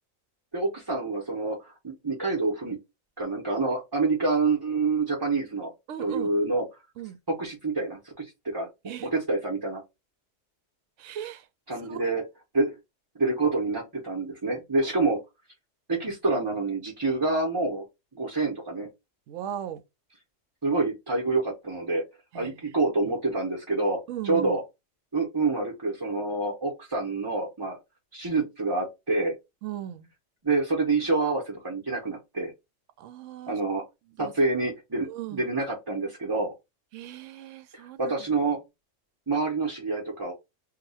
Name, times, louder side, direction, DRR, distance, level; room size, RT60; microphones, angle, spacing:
voice 1, 0.5-2.8 3.2-5.7 6.0-6.6 7.4-8.7 9.0-9.8 11.7-12.2 12.5-12.7 13.1-15.2 15.9-17.8 18.1-18.9 20.6-22.0 22.3-24.6 25.1-27.8 28.1-29.3 30.4-32.5 33.5-33.8 34.2-36.5 37.7-38.6 39.3-40.3, right 3 dB, 20° right, 0.8 m, -27 dB
voice 2, 5.9-6.3 7.0-7.2 8.8-9.1 11.0-11.5 11.8-12.0 19.3-19.8 22.3-22.7 24.1-24.6 29.6-30.1 33.0-33.6 34.2-34.3 35.1-35.4 36.9-38.1, right 10 dB, 75° right, 0.9 m, -38 dB
2.9 x 2.3 x 4.1 m
omnidirectional pair, 1.3 m